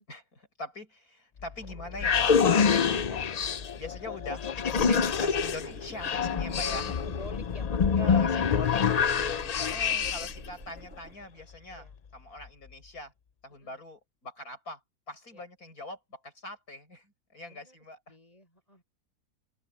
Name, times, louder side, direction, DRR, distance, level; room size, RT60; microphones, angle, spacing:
voice 1, 0.1-3.3 3.8-4.5 4.8-7.0 8.0-8.8 9.6-13.1 13.4-14.8 15.1-18.0, left 2 dB, 80° left, 7.7 m, -42 dB
sound 1, 1.4-10.5, left 6 dB, 60° left, 0.4 m, -26 dB
sound 2, 4.7-11.2, right 1 dB, 55° right, 7.3 m, -47 dB
voice 2, 6.6-9.5 11.7-11.9 13.5-13.8 15.3-15.4 17.5-17.8 18.1-18.8, left 1 dB, 25° left, 6.5 m, -50 dB
open air
omnidirectional pair, 1.5 m